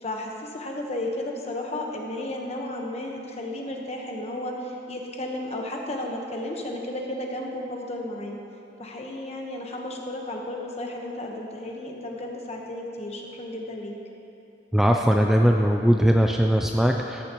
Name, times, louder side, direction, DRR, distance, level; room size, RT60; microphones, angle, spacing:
voice 1, 0.0-8.4 8.8-13.9, left 1 dB, 35° left, 1 dB, 1.1 m, -33 dB
voice 2, 14.7-17.2, equal, ahead, 2 dB, 0.3 m, -20 dB
14.0 x 10.5 x 3.0 m, 2.8 s
head